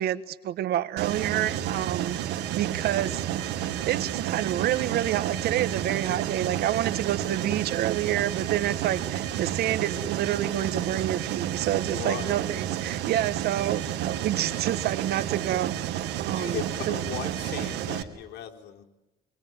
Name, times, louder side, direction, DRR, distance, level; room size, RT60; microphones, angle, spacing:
voice 1, 0.0-2.2 2.5-3.5 3.9-15.7 16.2-16.6 16.9-17.0, right 12 dB, 70° right, 13 dB, 1.7 m, -28 dB
Mechanisms, 1.0-18.0, right 11 dB, 90° right, 2.3 m, -31 dB
voice 2, 1.3-1.9 11.8-12.3 13.6-13.7 16.3-18.8, left 11 dB, 80° left, 3 dB, 3.6 m, -38 dB
26.5 x 23.0 x 9.4 m, 1.0 s
cardioid pair, 110°, 17 cm